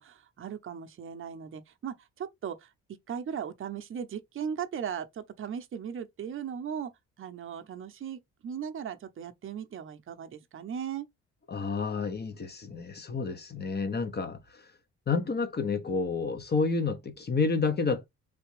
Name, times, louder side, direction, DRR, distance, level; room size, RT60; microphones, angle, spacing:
voice 1, 0.0-2.7 3.1-6.9 7.2-11.1, right 8 dB, 45° right, 0.7 m, -37 dB
voice 2, 11.5-14.7 15.1-18.1, left 4 dB, 35° left, 0.8 m, -30 dB
3.3 x 2.8 x 3.2 m
cardioid pair, 90°, 30 cm